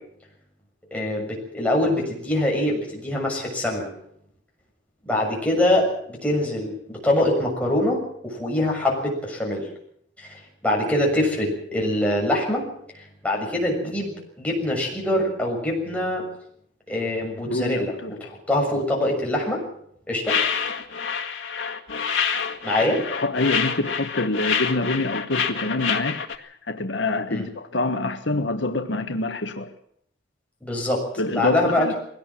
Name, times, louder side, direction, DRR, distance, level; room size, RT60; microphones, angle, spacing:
voice 1, 0.9-3.9 5.0-9.6 10.2-12.6 12.9-16.2 16.9-19.6 20.1-20.4 22.6-23.0 27.3-27.4 30.6-31.0 31.3-32.0, left 1 dB, 5° left, -2 dB, 6.8 m, -24 dB
voice 2, 17.5-18.1 23.1-29.7 31.2-31.9, left 2 dB, 65° left, 6 dB, 1.4 m, -26 dB
sound 1, 20.3-26.4, left 6 dB, 90° left, 1.9 m, -27 dB
21.0 x 17.5 x 7.5 m, 0.70 s
head